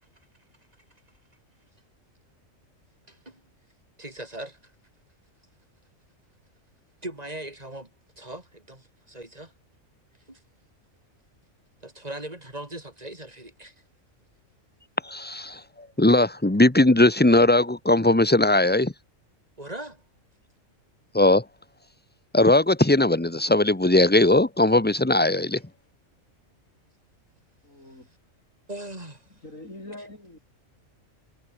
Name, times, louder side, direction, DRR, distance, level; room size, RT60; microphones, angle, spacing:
voice 1, 3.1-3.4 4.0-4.7 7.0-7.9 8.2-9.5 10.3-10.4 11.8-13.7 19.6-20.0 28.7-29.3, right 1 dB, 30° right, 5.0 m, -39 dB
voice 2, 15.0-15.6 16.0-18.9 21.1-21.4 22.3-25.6, left 2 dB, 10° left, 1.4 m, -19 dB
voice 3, 27.6-28.1 29.3-30.4, left 1 dB, 75° left, 8.1 m, -43 dB
omnidirectional pair, 1.4 m